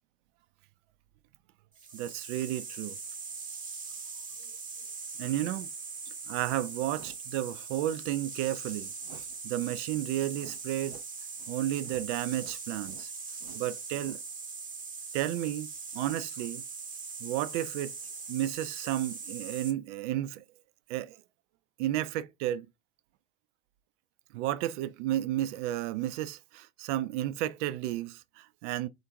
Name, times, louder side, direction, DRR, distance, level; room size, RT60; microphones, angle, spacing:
sound 1, 1.8-19.7, right 5 dB, 20° right, 0.7 m, -41 dB
voice 1, 1.9-3.0 5.2-5.7 6.3-11.0 11.5-13.1 13.4-14.2 15.1-16.6 17.2-17.9 18.3-20.4 20.9-21.2 21.8-22.7 24.3-28.9, right 13 dB, 65° right, 0.5 m, -32 dB
3.3 x 2.5 x 2.9 m
hypercardioid pair, 80°, 38 cm